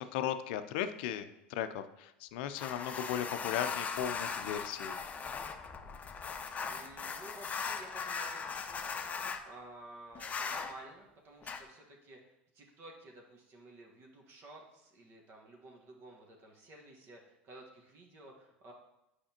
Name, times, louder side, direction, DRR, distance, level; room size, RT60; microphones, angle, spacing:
voice 1, 0.0-5.0, left 10 dB, 65° left, 10 dB, 0.5 m, -37 dB
sound 1, 2.6-9.4 10.2-10.7 11.4-11.6, left 5 dB, 25° left, 0.6 m, -39 dB
voice 2, 6.7-18.7, right 2 dB, 45° right, 0 dB, 1.5 m, -53 dB
8.6 x 5.0 x 2.9 m, 0.88 s
hypercardioid pair, 85°, 6 cm